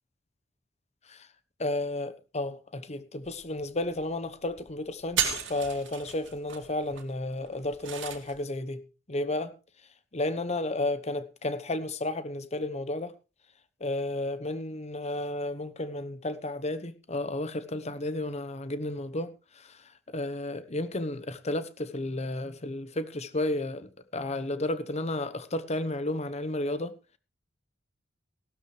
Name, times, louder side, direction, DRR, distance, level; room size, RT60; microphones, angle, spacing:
voice 1, 1.6-8.8 9.1-9.5 10.1-13.1 13.8-26.9, left 2 dB, 35° left, 1.0 m, -32 dB
sound 1, 3.2-3.3 3.6-4.0 4.4-4.7 5.0-8.4, right 8 dB, 70° right, 2.3 m, -34 dB
16.0 x 13.0 x 3.3 m
head